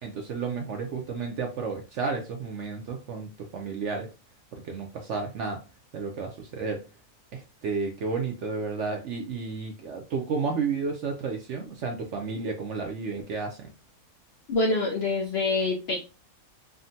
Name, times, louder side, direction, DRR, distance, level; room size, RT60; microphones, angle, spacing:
voice 1, 0.0-4.1 4.5-5.6 5.9-6.8 7.3-13.7, right 4 dB, 70° right, 2 dB, 0.7 m, -32 dB
voice 2, 14.5-16.1, left 2 dB, 65° left, -1 dB, 0.6 m, -26 dB
3.6 x 2.1 x 2.6 m, 0.31 s
omnidirectional pair, 1.6 m